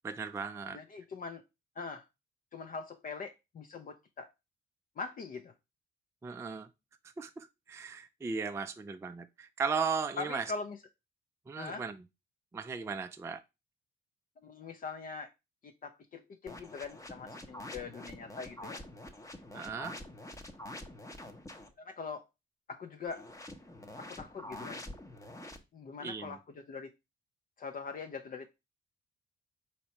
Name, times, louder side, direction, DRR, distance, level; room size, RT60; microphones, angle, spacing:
voice 1, 0.0-0.8 6.2-6.7 7.2-10.5 11.5-12.0 12.5-13.4 19.5-20.0 26.0-26.4, right 5 dB, 15° right, 0.3 m, -36 dB
voice 2, 0.7-1.4 1.8-2.0 2.5-4.3 5.0-5.5 10.2-10.8 11.6-11.9 14.4-15.3 15.6-18.8 21.8-22.2 22.7-23.3 24.0-24.8 25.7-26.9 27.6-28.5, left 4 dB, 45° left, 0.5 m, -42 dB
sound 1, 16.5-21.7 23.1-25.6, left 1 dB, 15° left, 0.8 m, -46 dB
4.2 x 2.9 x 4.3 m
cardioid pair, 90°, 20 cm